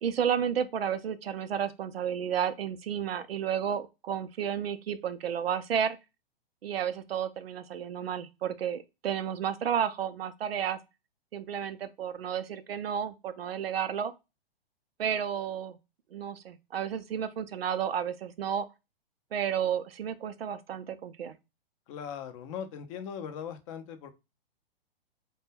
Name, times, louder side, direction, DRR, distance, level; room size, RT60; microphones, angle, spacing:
voice 1, 0.0-6.0 6.6-10.8 11.3-14.1 15.0-15.8 16.1-18.6 19.3-21.3, right 8 dB, 80° right, 0.5 m, -32 dB
voice 2, 21.9-24.1, left 8 dB, 35° left, 0.5 m, -39 dB
2.2 x 2.1 x 3.2 m
hypercardioid pair, 120°, 30 cm